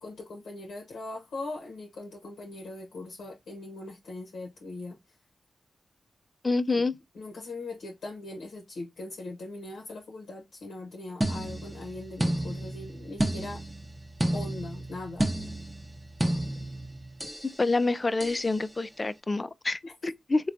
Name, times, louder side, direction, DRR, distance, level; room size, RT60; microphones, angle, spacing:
voice 1, 0.0-5.0 6.7-6.8 7.1-13.6 14.3-15.3 19.8-20.1, left 2 dB, 85° left, 0.7 m, -40 dB
voice 2, 6.4-6.9 17.6-19.8 20.3-20.4, left 3 dB, 35° left, 0.3 m, -26 dB
sound 1, 11.2-17.5 18.2-18.5, right 1 dB, 20° right, 0.7 m, -32 dB
3.4 x 2.2 x 2.5 m
cardioid pair, 50°, 0 cm